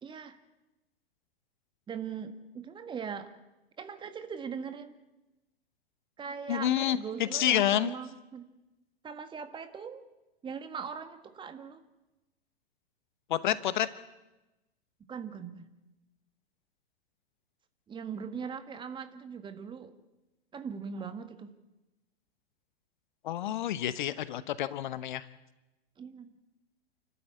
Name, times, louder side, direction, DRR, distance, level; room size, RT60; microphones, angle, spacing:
voice 1, 0.0-0.4 1.9-3.3 3.8-4.9 6.2-8.4 9.0-10.1 10.4-11.8 15.1-15.7 17.9-19.9 20.5-21.5 26.0-26.3, right 6 dB, 15° right, 9 dB, 1.6 m, -40 dB
voice 2, 6.5-7.9 13.3-13.9 23.2-25.2, left 12 dB, 50° left, 15 dB, 1.0 m, -29 dB
29.0 x 13.0 x 8.5 m, 1.0 s
figure-of-eight pair, 100°, 32 cm